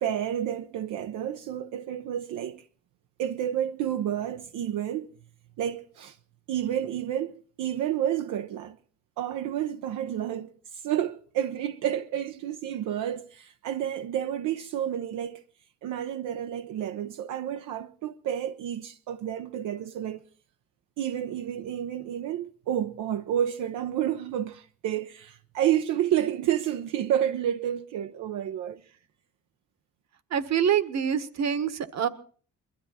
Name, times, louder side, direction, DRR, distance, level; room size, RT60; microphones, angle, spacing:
voice 1, 0.0-2.7 3.2-5.1 5.6-6.2 6.5-8.8 9.2-15.4 15.8-20.2 21.0-28.8, right 10 dB, 85° right, 0.8 m, -30 dB
voice 2, 30.3-32.1, right 8 dB, 60° right, 1.5 m, -26 dB
22.0 x 13.0 x 4.2 m
cardioid pair, 90°, 30 cm